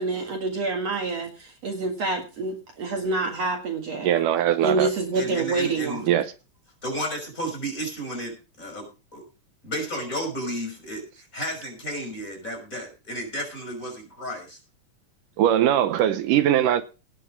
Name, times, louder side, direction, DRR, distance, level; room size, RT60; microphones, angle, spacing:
voice 1, 0.0-4.1 4.6-6.2, right 3 dB, 55° right, 2.8 m, -27 dB
voice 2, 4.0-4.9 6.1-6.3 15.4-16.8, right 11 dB, 80° right, 2.4 m, -21 dB
voice 3, 5.1-6.0 6.8-8.9 9.1-9.2 9.6-14.6, equal, 20° left, 6.0 m, -32 dB
18.0 x 6.7 x 5.2 m
omnidirectional pair, 3.8 m